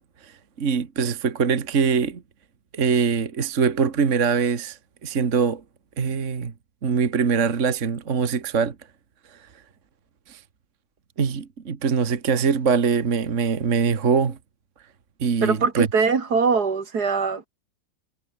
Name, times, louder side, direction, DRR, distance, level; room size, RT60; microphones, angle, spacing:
voice 1, 0.2-2.2 2.7-5.6 6.0-6.5 6.8-8.8 10.3-10.4 11.2-14.4 15.2-15.9, right 5 dB, 45° right, 1.9 m, -23 dB
voice 2, 15.4-17.5, right 5 dB, 65° right, 2.7 m, -22 dB
omnidirectional pair, 1.9 m